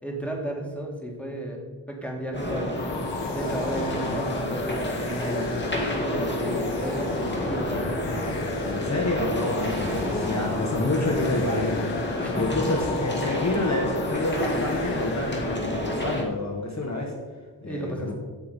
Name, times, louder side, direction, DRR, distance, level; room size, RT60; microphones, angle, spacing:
voice 1, 0.0-1.6 1.9-2.7 3.3-8.1 12.2-12.7 17.7-18.1, right 1 dB, 5° left, 0 dB, 2.5 m, -34 dB
sound 1, 2.3-16.2, left 1 dB, 25° left, 2.0 m, -29 dB
sound 2, 2.8-15.6, left 6 dB, 80° left, 1.1 m, -38 dB
voice 2, 8.6-17.1 17.6-18.1, left 2 dB, 40° left, 1 dB, 1.5 m, -28 dB
16.0 x 5.8 x 5.3 m, 1.4 s
wide cardioid pair, 110°, 42 cm